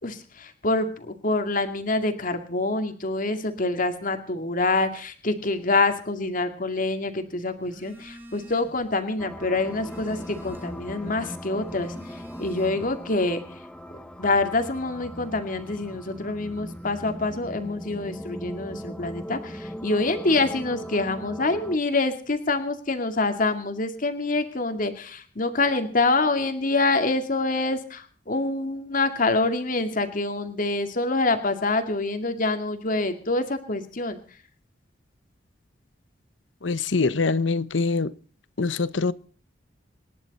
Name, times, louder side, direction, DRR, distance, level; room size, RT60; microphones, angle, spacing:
voice 1, 0.0-11.9 12.4-13.4 14.2-34.2, left 2 dB, 45° left, 2.3 m, -26 dB
Telephone, 7.6-8.9 9.3-10.9 11.6-13.1, equal, 15° right, 5.6 m, -46 dB
sound 1, 9.2-21.8, equal, 5° left, 1.3 m, -39 dB
voice 2, 36.6-38.1 38.6-39.1, left 3 dB, 85° left, 0.9 m, -24 dB
27.0 x 11.0 x 4.2 m
head